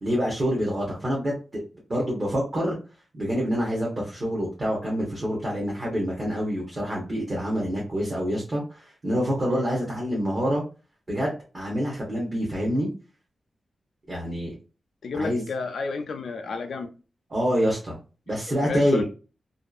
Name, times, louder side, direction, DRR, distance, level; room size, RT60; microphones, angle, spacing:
voice 1, 0.0-1.6 1.9-2.8 3.1-10.6 11.1-12.9 14.1-14.5 15.1-15.4 17.3-18.0 18.3-19.0, equal, 30° right, 0.8 m, -26 dB
voice 2, 15.0-16.9 18.6-19.0, left 4 dB, 75° left, 0.4 m, -31 dB
2.6 x 2.4 x 2.3 m
wide cardioid pair, 155°, 0 cm